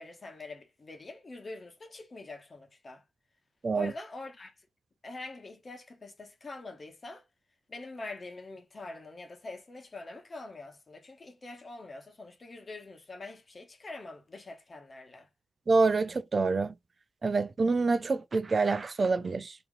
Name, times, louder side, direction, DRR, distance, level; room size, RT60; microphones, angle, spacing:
voice 1, 0.0-3.0 3.7-4.5 5.0-7.2 7.7-15.3, left 2 dB, 40° left, 1.1 m, -44 dB
voice 2, 15.7-16.7 17.2-19.5, right 3 dB, 45° right, 0.4 m, -26 dB
3.1 x 2.9 x 3.6 m
supercardioid pair, 45°, 0 cm